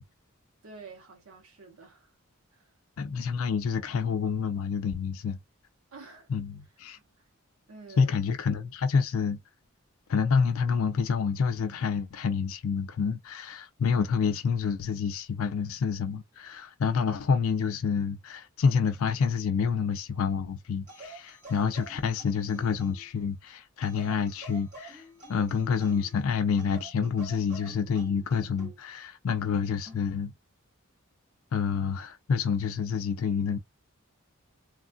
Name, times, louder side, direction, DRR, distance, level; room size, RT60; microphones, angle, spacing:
voice 1, 0.6-2.1 2.5-2.8 5.9-6.3 6.6-7.3 7.7-8.1, right 4 dB, 85° right, 1.1 m, -49 dB
voice 2, 3.0-5.4 6.3-7.0 8.0-9.4 10.1-25.0 25.3-30.3 31.5-33.6, left 6 dB, 80° left, 0.4 m, -28 dB
sound 1, 20.9-23.1 23.8-26.2 26.6-28.8 29.8-30.1, right 1 dB, 35° right, 1.7 m, -48 dB
3.1 x 2.5 x 2.2 m
head